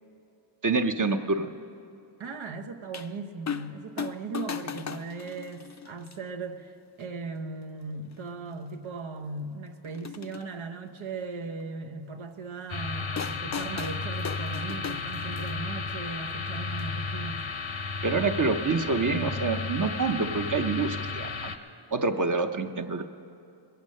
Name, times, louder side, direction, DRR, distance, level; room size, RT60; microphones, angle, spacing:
voice 1, 0.6-1.5 18.0-21.5 21.9-23.1, right 4 dB, 40° right, 6 dB, 0.7 m, -27 dB
voice 2, 2.2-17.5, right 4 dB, 80° right, 4 dB, 1.0 m, -38 dB
sound 1, 2.9-3.1 3.5-3.7 4.0-6.1 7.0-7.1 8.1-8.2 8.5-8.6 9.8-10.4 13.2-15.6 16.8-16.9, left 7 dB, 40° left, 0.5 m, -37 dB
sound 2, 12.7-21.6, left 4 dB, 75° left, 0.9 m, -33 dB
22.0 x 8.2 x 6.4 m, 2.6 s
wide cardioid pair, 70°, 47 cm